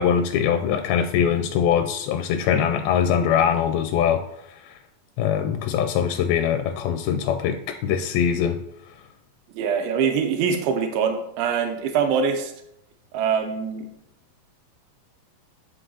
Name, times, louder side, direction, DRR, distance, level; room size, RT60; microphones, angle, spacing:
voice 1, 0.0-4.2 4.6-4.8 5.2-8.6, left 8 dB, 90° left, 7 dB, 2.4 m, -22 dB
voice 2, 9.6-12.5 13.1-13.8, right 6 dB, 90° right, 5 dB, 2.5 m, -23 dB
9.9 x 5.4 x 2.8 m, 0.77 s
omnidirectional pair, 4.2 m